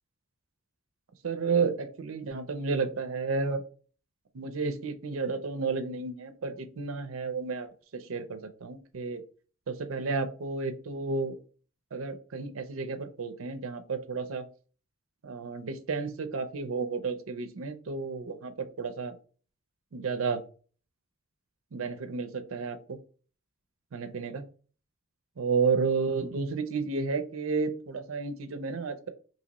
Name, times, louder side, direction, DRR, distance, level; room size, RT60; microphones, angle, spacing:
voice 1, 1.2-3.6 4.3-9.2 9.7-11.4 11.9-14.4 15.2-19.2 19.9-20.4 21.7-23.0 23.9-24.4 25.4-29.1, right 4 dB, 70° right, 9 dB, 0.5 m, -32 dB
2.9 x 2.8 x 3.9 m, 0.39 s
head